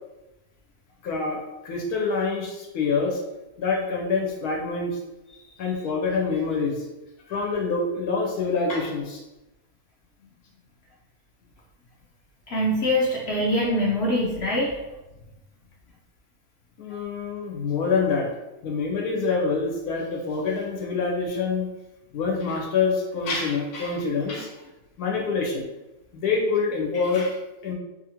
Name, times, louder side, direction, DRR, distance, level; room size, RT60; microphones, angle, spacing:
voice 1, 1.0-3.2 3.6-5.0 5.6-6.8 7.3-9.2 16.8-18.3 18.6-21.7 22.1-24.7 25.0-25.7 26.1-27.7, left 4 dB, 85° left, 0 dB, 1.1 m, -26 dB
voice 2, 12.5-14.8, equal, 65° left, -4 dB, 0.6 m, -23 dB
2.7 x 2.5 x 2.8 m, 0.99 s
omnidirectional pair, 1.6 m